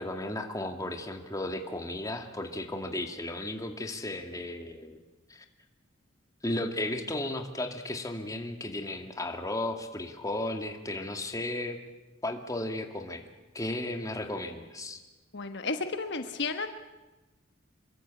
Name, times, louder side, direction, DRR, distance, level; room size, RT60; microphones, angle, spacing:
voice 1, 0.0-5.0 5.3-5.4 6.4-11.8 12.2-13.2 13.5-15.0, left 1 dB, 20° left, 4 dB, 2.3 m, -34 dB
voice 2, 15.3-16.7, left 3 dB, 60° left, 7 dB, 1.3 m, -32 dB
27.0 x 22.5 x 8.5 m, 1.1 s
head